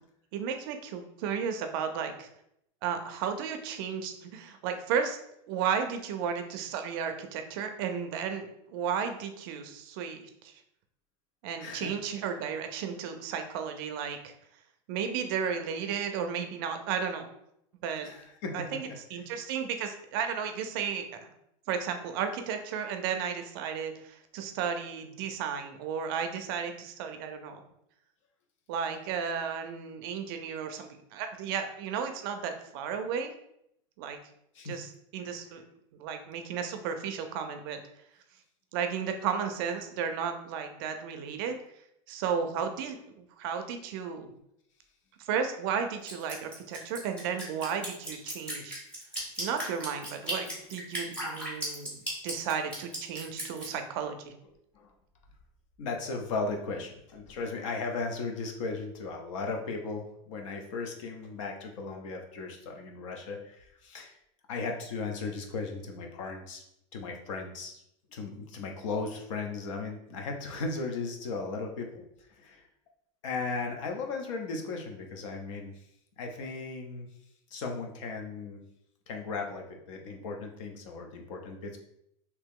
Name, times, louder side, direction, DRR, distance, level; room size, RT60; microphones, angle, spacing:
voice 1, 0.3-2.3 2.8-5.2 5.5-10.5 11.4-14.3 14.9-17.3 17.8-18.1 18.5-21.3 21.7-27.6 28.7-33.3 34.0-34.2 34.6-35.6 35.9-37.8 38.7-41.6 42.1-44.3 45.2-48.8 49.4-54.3, right 7 dB, 45° right, 7 dB, 0.4 m, -34 dB
voice 2, 11.6-11.9 18.0-18.8 19.1-19.2 34.5-34.8 35.2-35.4 51.3-51.4 54.7-54.9 55.8-64.2 64.5-66.6 66.9-67.8 68.1-72.0 72.3-72.6 73.2-75.8 76.2-77.1 77.5-78.6 79.1-81.8, left 4 dB, 90° left, 3 dB, 0.8 m, -36 dB
Drip, 46.1-53.7, right 1 dB, 5° left, 0.8 m, -36 dB
2.9 x 2.9 x 3.6 m, 0.76 s
supercardioid pair, 175°, 16 cm